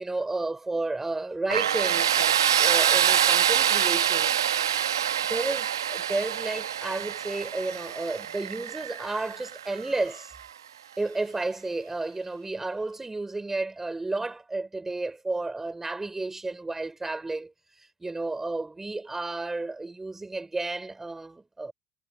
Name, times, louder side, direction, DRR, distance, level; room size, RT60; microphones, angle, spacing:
voice 1, 0.0-4.4 5.3-10.3 11.0-17.5 17.8-21.7, right 2 dB, 15° right, 5.6 m, -32 dB
Tools, 1.5-10.3, right 9 dB, 80° right, 1.5 m, -25 dB
figure-of-eight pair, 60°, 2 cm